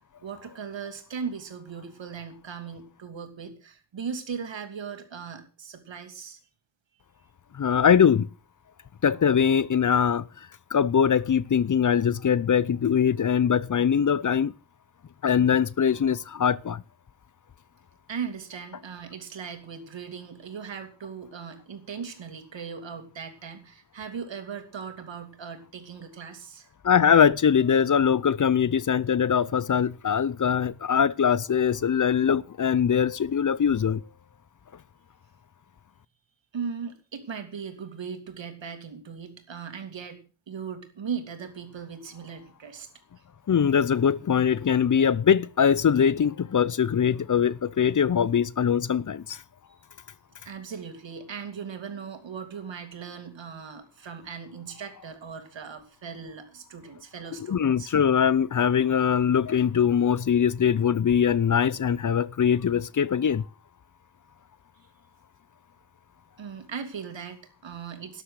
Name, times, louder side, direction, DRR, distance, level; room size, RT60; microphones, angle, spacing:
voice 1, 0.2-6.4 18.1-26.7 36.5-42.9 50.4-57.9 66.4-68.2, right 6 dB, 85° right, 2.8 m, -38 dB
voice 2, 7.5-8.3 9.0-10.3 10.7-14.5 15.2-16.8 26.8-34.0 43.5-49.4 57.4-63.4, left 7 dB, 45° left, 0.6 m, -22 dB
13.0 x 10.0 x 6.5 m
cardioid pair, 70°, 44 cm